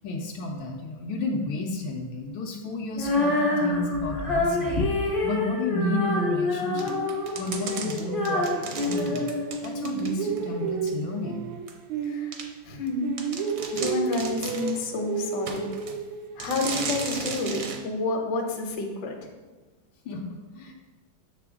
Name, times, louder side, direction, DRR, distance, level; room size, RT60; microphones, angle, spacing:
voice 1, 0.0-4.8 5.2-7.0 7.3-9.3 9.6-11.5 20.0-20.7, left 2 dB, 85° left, 1 dB, 1.4 m, -32 dB
Female singing, 2.9-10.0, left 2 dB, 30° left, 0.5 m, -27 dB
sound 1, 6.7-9.5 9.8-12.8 13.0-16.5, right 6 dB, 85° right, 1.4 m, -33 dB
sound 2, 6.8-10.4 10.9-11.0 11.7-11.8 12.3-12.5 12.9-13.0 13.2-14.8 15.5-16.0 16.4-17.8, right 4 dB, 60° right, 0.9 m, -35 dB
voice 2, 12.0-12.4 12.7-13.2 13.7-15.7 16.4-19.3, left 3 dB, 65° left, 3 dB, 1.4 m, -29 dB
6.7 x 5.0 x 3.6 m, 1.3 s
omnidirectional pair, 2.1 m